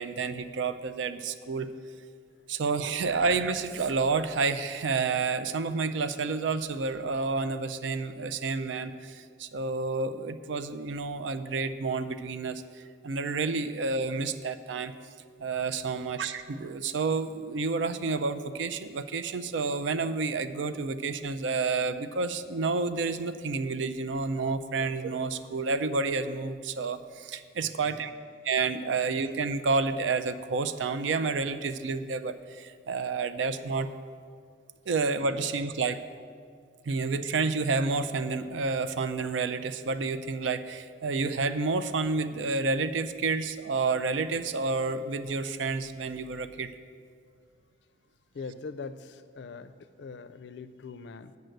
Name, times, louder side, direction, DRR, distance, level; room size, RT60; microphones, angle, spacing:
voice 1, 0.0-1.7 2.5-12.6 13.0-14.9 15.4-28.1 28.4-33.9 34.9-36.0 36.9-46.7, right 4 dB, 80° right, 11 dB, 0.4 m, -30 dB
voice 2, 27.6-28.1 48.3-51.4, left 4 dB, 70° left, 13 dB, 0.4 m, -42 dB
7.9 x 5.4 x 7.7 m, 2.1 s
head